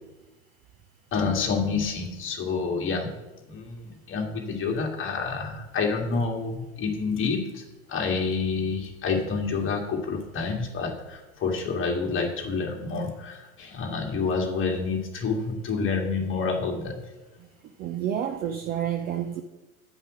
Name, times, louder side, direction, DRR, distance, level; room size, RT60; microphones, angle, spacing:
voice 1, 1.1-3.1 3.5-7.6 7.9-17.0, left 4 dB, 25° left, 1 dB, 1.9 m, -28 dB
voice 2, 17.8-19.4, right 9 dB, 20° right, 6 dB, 0.4 m, -29 dB
9.2 x 5.5 x 6.1 m, 1.1 s
figure-of-eight pair, 85°, 45 cm